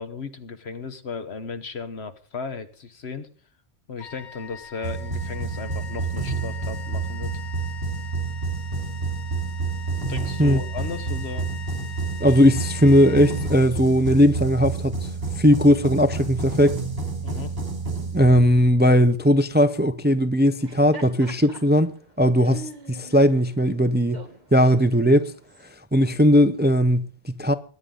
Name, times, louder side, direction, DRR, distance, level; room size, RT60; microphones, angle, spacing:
voice 1, 0.0-3.3 3.9-7.3 10.1-11.5 17.2-17.6, left 5 dB, 85° left, 1.5 m, -35 dB
Wind instrument woodwind instrument, 4.0-14.1, left 8 dB, 50° left, 1.0 m, -42 dB
sound 1, 4.8-18.7, right 4 dB, 65° right, 2.9 m, -29 dB
voice 2, 12.2-15.1 15.4-16.8 18.1-24.2 24.5-25.3 25.9-27.5, equal, 15° right, 0.4 m, -18 dB
Laughter, 20.5-25.7, right 3 dB, 45° right, 1.7 m, -43 dB
21.5 x 9.8 x 3.8 m
omnidirectional pair, 1.1 m